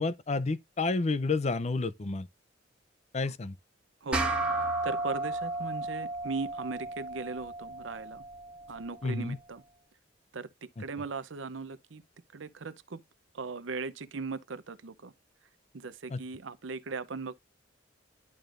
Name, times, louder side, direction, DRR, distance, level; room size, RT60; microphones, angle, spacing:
voice 1, 0.0-2.3 3.1-3.5 9.0-9.4 10.8-10.9 16.1-16.2, left 3 dB, 35° left, 0.5 m, -30 dB
sound 1, 4.1-8.9, right 2 dB, 5° right, 1.6 m, -33 dB
voice 2, 4.6-8.2 8.7-9.6 10.3-12.0 12.3-13.0 13.3-15.1 15.7-17.3, right 4 dB, 75° right, 0.7 m, -38 dB
11.0 x 4.8 x 2.5 m
head